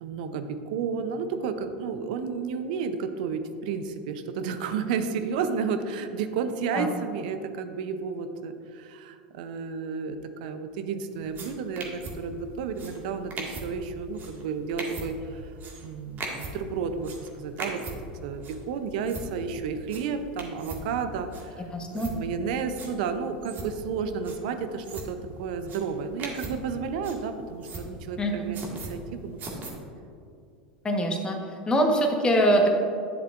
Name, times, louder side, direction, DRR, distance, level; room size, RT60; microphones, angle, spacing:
voice 1, 0.0-15.4 15.8-17.9 18.2-21.6 21.9-29.4 29.7-29.8, right 5 dB, 70° right, 9 dB, 0.6 m, -32 dB
sound 1, 11.1-29.7, right 2 dB, 40° right, 1.8 m, -41 dB
voice 2, 21.7-22.1 28.2-28.3 30.8-31.4 31.7-32.7, equal, 20° left, 2 dB, 1.2 m, -23 dB
11.0 x 6.7 x 2.5 m, 2.5 s
hypercardioid pair, 95°, 5 cm